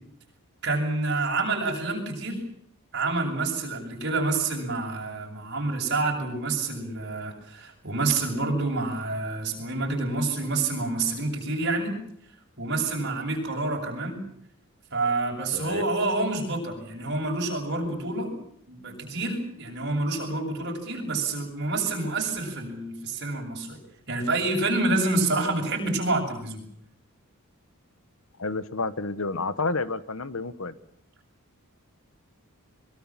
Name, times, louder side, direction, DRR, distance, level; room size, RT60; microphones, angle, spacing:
voice 1, 0.6-2.4 2.9-12.0 12.6-14.2 14.9-18.3 18.7-23.8 24.1-26.6, right 3 dB, 50° right, 1 dB, 7.4 m, -28 dB
voice 2, 15.5-15.8 28.4-30.8, left 3 dB, 65° left, 14 dB, 1.2 m, -30 dB
23.5 x 23.0 x 7.4 m, 0.68 s
head